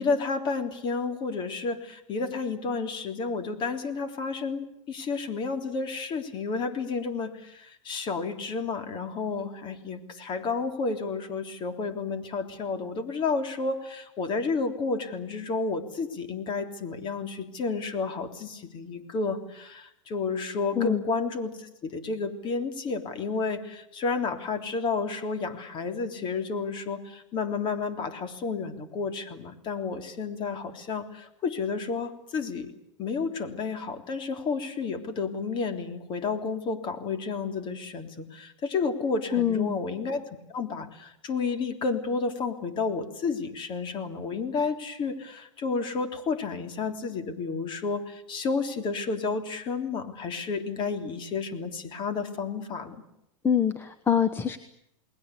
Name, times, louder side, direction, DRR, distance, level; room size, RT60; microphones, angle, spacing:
voice 1, 0.0-32.7 33.0-40.2 40.5-53.0, left 4 dB, 30° left, 7 dB, 3.5 m, -31 dB
voice 2, 39.3-39.8 53.4-54.6, left 8 dB, 15° left, 10 dB, 1.2 m, -24 dB
29.5 x 20.5 x 8.4 m, 0.78 s
hypercardioid pair, 140°, 17 cm